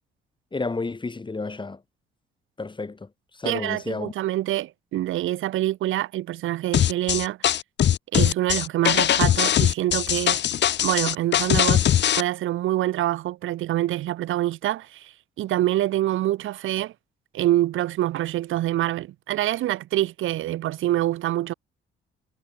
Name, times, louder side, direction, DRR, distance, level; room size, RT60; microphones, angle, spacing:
voice 1, 0.5-1.8 2.6-3.1 3.4-4.1, left 3 dB, 25° left, 6.3 m, -31 dB
voice 2, 3.4-7.4 8.1-10.4 10.8-11.8 12.2-15.1 15.4-16.9 17.3-21.5, right 14 dB, 85° right, 4.8 m, -25 dB
sound 1, 6.7-12.2, left 11 dB, 65° left, 1.3 m, -21 dB
cardioid pair, 90°, 20 cm